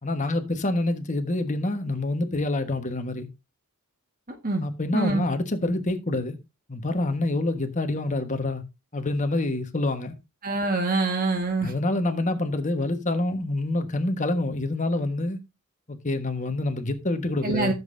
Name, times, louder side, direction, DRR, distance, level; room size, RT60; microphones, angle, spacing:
voice 1, 0.0-3.3 4.6-6.4 6.7-8.6 8.9-10.1 11.6-15.4 15.9-17.7, left 2 dB, 35° left, 1.4 m, -27 dB
voice 2, 4.9-5.2 10.4-11.7 17.4-17.7, right 3 dB, 40° right, 1.6 m, -25 dB
14.5 x 7.5 x 2.6 m
head